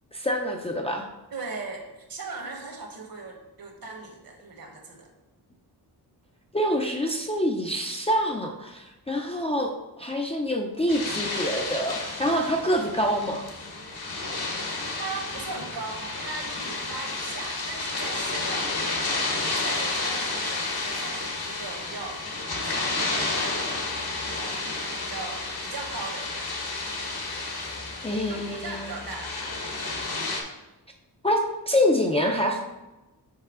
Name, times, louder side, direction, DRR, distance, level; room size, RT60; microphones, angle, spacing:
voice 1, 0.1-1.1 6.5-9.7 10.0-13.4 28.0-28.9 31.2-32.6, equal, 15° left, 0 dB, 0.4 m, -26 dB
voice 2, 1.3-5.1 15.0-22.3 22.6-23.8 24.3-26.5 28.3-29.6, right 3 dB, 60° right, 2 dB, 1.2 m, -39 dB
sound 1, 10.9-30.4, left 3 dB, 65° left, 1.2 m, -31 dB
5.5 x 5.5 x 3.7 m, 1.0 s
wide cardioid pair, 175°, 40 cm